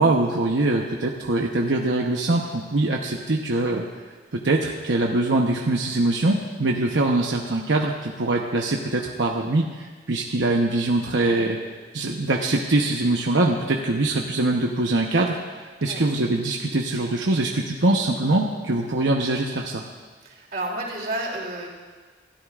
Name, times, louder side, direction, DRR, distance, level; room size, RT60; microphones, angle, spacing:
voice 1, 0.0-3.8 4.3-11.6 11.9-15.4 15.8-19.8, right 2 dB, 90° right, 0 dB, 0.9 m, -23 dB
voice 2, 20.2-21.7, right 1 dB, 55° right, -2 dB, 3.1 m, -31 dB
28.0 x 13.0 x 2.5 m, 1.4 s
head